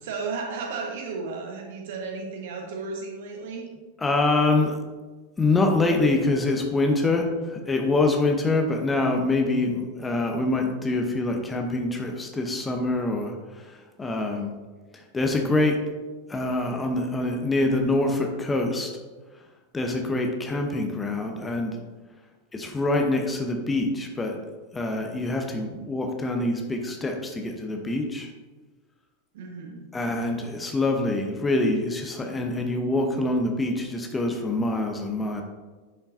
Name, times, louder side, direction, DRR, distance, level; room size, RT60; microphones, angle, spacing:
voice 1, 0.0-3.6 29.3-29.9, right 4 dB, 55° right, 1 dB, 1.4 m, -34 dB
voice 2, 4.0-4.8 5.4-13.7 14.0-14.5 14.9-15.8 16.3-18.9 19.7-21.8 22.5-24.4 24.7-28.3 29.9-35.4, left 2 dB, 15° left, 3 dB, 0.9 m, -25 dB
10.5 x 5.7 x 2.7 m, 1.3 s
figure-of-eight pair, 90°, 0 cm